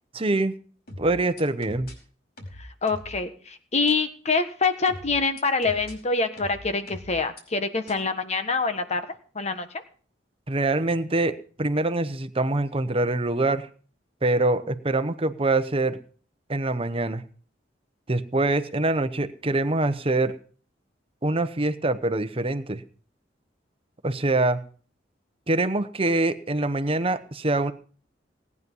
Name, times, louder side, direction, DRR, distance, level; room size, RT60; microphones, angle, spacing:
voice 1, 0.1-0.5 1.0-1.9 10.5-13.7 14.2-16.0 16.5-17.2 18.1-20.4 21.2-22.8 24.0-24.6 25.5-27.7, right 2 dB, 30° right, 11 dB, 1.0 m, -24 dB
sound 1, 0.9-1.9 2.4-3.2 3.9-4.0 4.9-5.9 6.4-7.4 7.9-8.0, left 1 dB, 60° left, 4.9 m, -41 dB
voice 2, 2.6-9.0 9.3-9.7, left 4 dB, 40° left, 9 dB, 1.4 m, -25 dB
18.0 x 9.6 x 5.5 m, 0.42 s
head